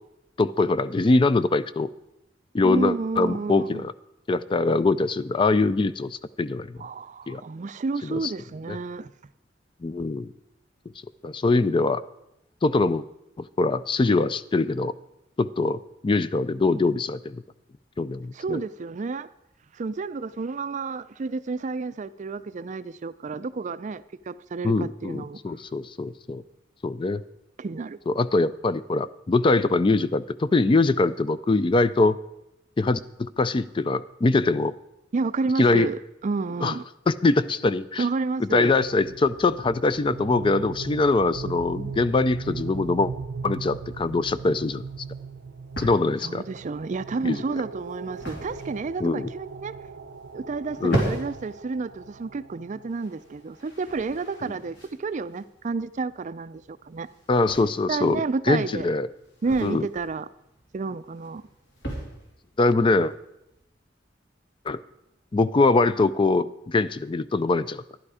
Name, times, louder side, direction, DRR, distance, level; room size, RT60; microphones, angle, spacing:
voice 1, 0.4-1.9 2.5-3.9 4.3-6.8 7.3-7.4 8.0-8.3 8.7-8.8 9.8-10.3 11.2-12.0 12.6-13.0 13.4-14.9 15.4-17.4 18.0-18.6 24.6-26.4 26.8-27.2 28.1-32.2 32.8-34.7 35.6-35.9 36.6-36.7 37.1-38.0 38.5-43.1 43.4-44.8 45.8-46.4 47.2-47.4 49.0-49.3 50.8-51.0 57.3-59.1 59.6-59.9 62.6-63.1 64.7-64.8 65.3-67.8, left 3 dB, 25° left, 15 dB, 0.4 m, -23 dB
voice 2, 2.6-3.8 6.8-9.1 18.3-19.3 19.7-25.4 27.6-28.0 35.1-36.8 38.0-38.7 46.2-49.7 50.3-57.1 57.9-58.9 59.4-60.3 60.7-61.4, right 4 dB, 40° right, 15 dB, 0.4 m, -30 dB
sound 1, 38.4-53.3, right 5 dB, 80° right, 0.6 m, -39 dB
sound 2, 43.9-63.7, right 1 dB, 65° left, 3.2 m, -38 dB
12.5 x 11.0 x 4.9 m, 0.86 s
head